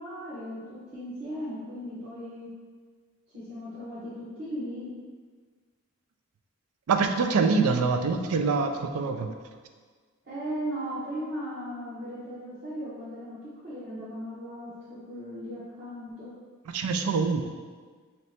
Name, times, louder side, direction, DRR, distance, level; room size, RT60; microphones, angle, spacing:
voice 1, 0.0-2.5 3.3-4.9 10.2-13.4 13.6-16.3, equal, 45° right, -11 dB, 1.0 m, -37 dB
voice 2, 6.9-9.3 16.7-17.4, right 4 dB, 85° right, 6 dB, 0.4 m, -25 dB
3.1 x 2.8 x 4.3 m, 1.5 s
head